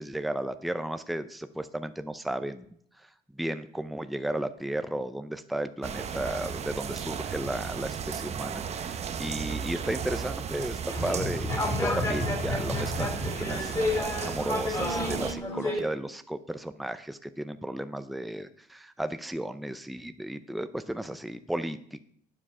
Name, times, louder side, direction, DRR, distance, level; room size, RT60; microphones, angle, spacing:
voice 1, 0.0-2.7 3.0-22.0, right 1 dB, ahead, 10 dB, 0.6 m, -34 dB
sound 1, 5.8-15.3, right 7 dB, 40° right, 0.7 m, -35 dB
sound 2, 10.9-15.8, left 2 dB, 20° left, 2.8 m, -30 dB
9.6 x 7.5 x 5.5 m, 0.62 s
cardioid pair, 110°, 17 cm